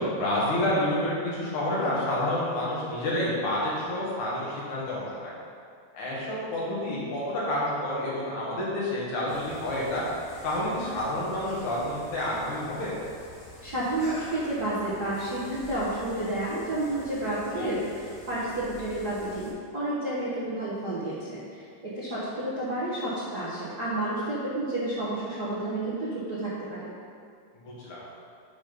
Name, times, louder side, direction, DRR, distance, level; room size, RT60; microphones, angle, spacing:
voice 1, 0.0-5.3 5.9-10.0 10.4-12.9 17.6-17.7 27.6-28.0, left 1 dB, 75° left, -7 dB, 3.0 m, -29 dB
sound 1, 9.3-19.5, equal, 55° left, 2.4 m, -47 dB
voice 2, 13.6-26.9, right 1 dB, 80° right, -10 dB, 0.8 m, -30 dB
7.2 x 4.1 x 5.1 m, 2.2 s
omnidirectional pair, 3.5 m